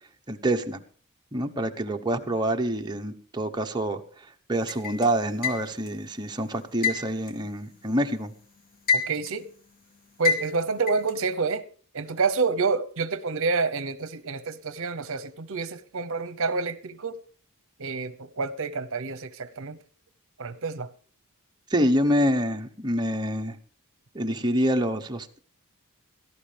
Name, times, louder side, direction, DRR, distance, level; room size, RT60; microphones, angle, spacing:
voice 1, 0.3-0.8 1.3-4.0 4.5-8.3 21.7-23.5 24.1-25.4, equal, 20° right, 0.9 m, -26 dB
sound 1, 4.7-6.0 6.8-8.2 8.6-9.5 10.2-11.1, left 6 dB, 40° left, 2.0 m, -27 dB
voice 2, 8.9-9.5 10.2-11.6 11.9-17.2 17.8-19.8 20.4-20.9, right 4 dB, 60° right, 0.8 m, -28 dB
17.0 x 13.5 x 3.4 m
head